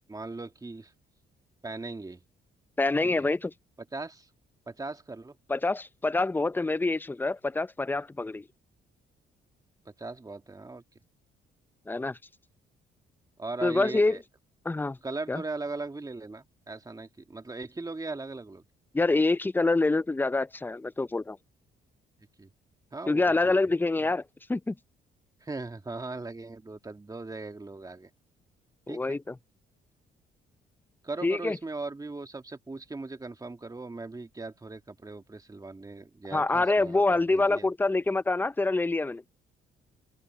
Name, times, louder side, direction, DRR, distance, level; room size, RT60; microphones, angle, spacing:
voice 1, 0.1-0.9 1.6-2.2 3.0-3.1 3.9-4.3 4.7-5.4 9.9-10.8 13.4-14.2 15.0-18.6 22.4-22.5 22.9-23.5 24.0-24.1 25.4-28.1 28.9-29.2 31.0-37.7, right 3 dB, 20° right, 1.9 m, -39 dB
voice 2, 2.8-3.5 5.5-8.5 11.9-12.2 13.6-14.2 14.6-15.0 15.3-15.4 18.9-21.4 23.1-24.2 24.5-24.8 28.9-29.4 31.2-31.6 36.3-39.2, left 2 dB, 10° left, 0.5 m, -26 dB
open air
cardioid pair, 90°, 20 cm